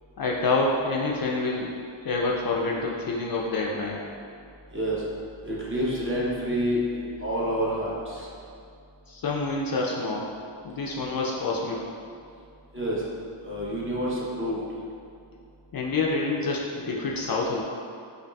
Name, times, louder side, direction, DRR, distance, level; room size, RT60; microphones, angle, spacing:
voice 1, 0.2-1.7 2.0-4.0 9.1-10.3 10.6-11.8 15.7-17.6, left 3 dB, 50° left, -2 dB, 0.5 m, -27 dB
voice 2, 4.7-5.0 5.4-8.3 12.7-13.0 13.4-14.6, equal, 25° right, -6 dB, 0.8 m, -28 dB
5.1 x 2.5 x 2.3 m, 2.4 s
cardioid pair, 60°, 49 cm